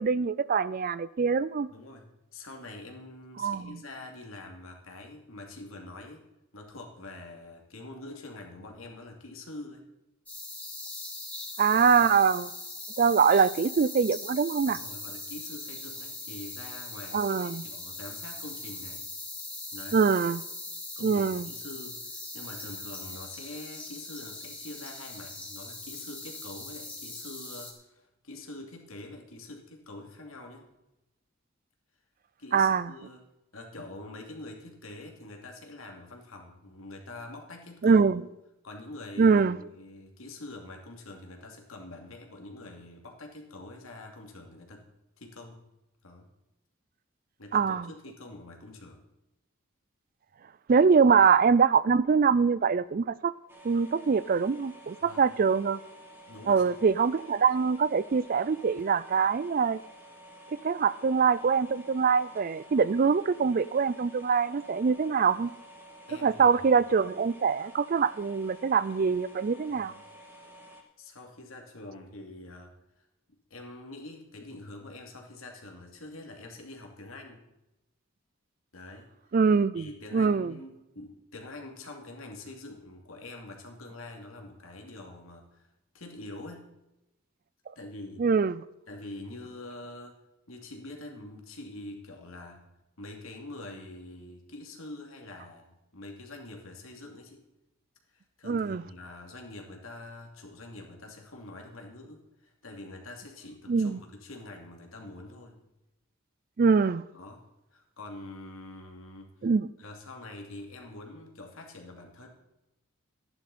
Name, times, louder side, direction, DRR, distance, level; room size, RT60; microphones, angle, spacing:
voice 1, 0.0-1.7 3.4-3.8 11.6-12.5 13.0-14.8 17.1-17.6 19.9-20.4 21.0-21.5 32.5-32.9 37.8-38.2 39.2-39.6 47.5-47.9 50.7-53.3 53.6-55.8 56.5-59.8 60.5-65.5 66.2-69.9 79.3-79.9 80.1-80.5 88.2-88.6 98.5-98.8 103.7-104.0 106.6-107.0 109.4-109.7, right 5 dB, 40° right, 0.4 m, -24 dB
voice 2, 1.7-6.2 6.5-9.9 14.7-19.1 19.7-20.1 21.0-22.1 22.3-30.7 32.4-33.2 33.5-38.0 38.6-44.9 45.2-45.6 46.0-46.3 47.4-49.0 55.0-55.3 56.3-56.8 66.1-66.6 69.7-69.9 71.0-72.7 73.5-77.4 78.7-79.1 79.7-85.7 85.9-86.7 87.8-88.3 88.9-90.2 90.5-92.7 93.0-97.4 98.1-105.6 107.1-109.5 109.8-112.3, left 2 dB, 80° left, 2.6 m, -45 dB
sound 1, 10.3-27.7, left 2 dB, 5° left, 2.1 m, -41 dB
sound 2, 53.5-70.8, equal, 10° right, 2.1 m, -51 dB
14.5 x 11.0 x 4.2 m
head